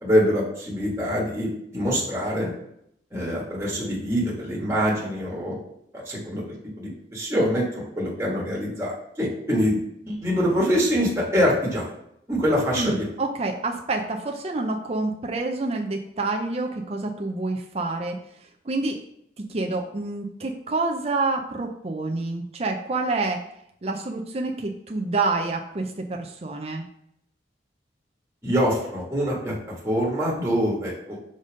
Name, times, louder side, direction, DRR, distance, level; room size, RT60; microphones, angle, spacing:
voice 1, 0.0-2.5 3.1-5.5 5.9-6.5 6.8-9.8 10.0-11.9 12.3-13.1 28.4-29.5 29.8-31.2, equal, 15° right, -4 dB, 1.4 m, -24 dB
voice 2, 12.7-18.2 18.6-19.0 19.4-23.4 23.8-26.8, right 3 dB, 35° right, 2 dB, 0.5 m, -28 dB
5.1 x 4.0 x 5.1 m, 0.74 s
head